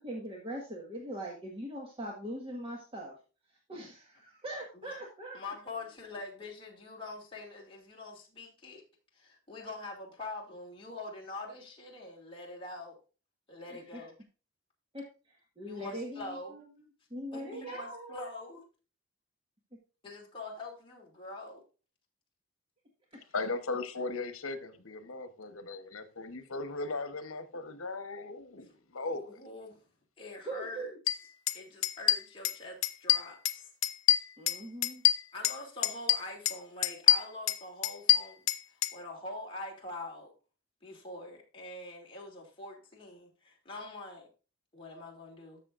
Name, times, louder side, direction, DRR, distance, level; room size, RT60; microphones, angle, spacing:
voice 1, 0.0-3.1 3.5-5.4 13.6-14.0 14.9-16.6 17.1-18.3 23.1-23.2 30.4-31.0 34.4-35.0, right 1 dB, 25° right, 1.5 m, -41 dB
voice 2, 5.3-8.8 9.1-13.0 13.5-14.1 15.6-16.5 17.3-18.6 20.0-21.6 29.1-29.7 30.2-30.8 31.5-33.7 35.3-38.5 38.9-40.3 40.8-44.3 44.7-45.6, left 2 dB, 25° left, 2.5 m, -44 dB
voice 3, 23.3-29.4, left 3 dB, 80° left, 1.1 m, -37 dB
sound 1, 31.1-31.2 31.5-31.6 31.8-32.6 32.8-33.6 33.8-35.6 35.8-36.6 36.8-38.9, left 13 dB, 65° left, 0.6 m, -26 dB
13.0 x 6.6 x 2.5 m
head